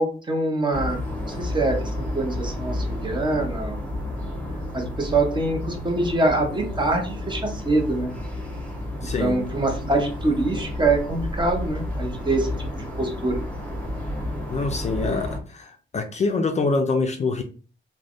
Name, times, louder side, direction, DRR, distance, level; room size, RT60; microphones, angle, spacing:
voice 1, 0.0-1.8 2.1-3.8 4.7-8.1 9.2-13.4, right 2 dB, 25° right, 2 dB, 0.8 m, -24 dB
sound 1, 0.7-15.4, left 1 dB, 5° left, 0.9 m, -31 dB
voice 2, 9.0-9.4 14.5-17.4, left 3 dB, 35° left, 5 dB, 0.4 m, -25 dB
3.2 x 2.1 x 2.5 m, 0.37 s
cardioid pair, 105°, 19 cm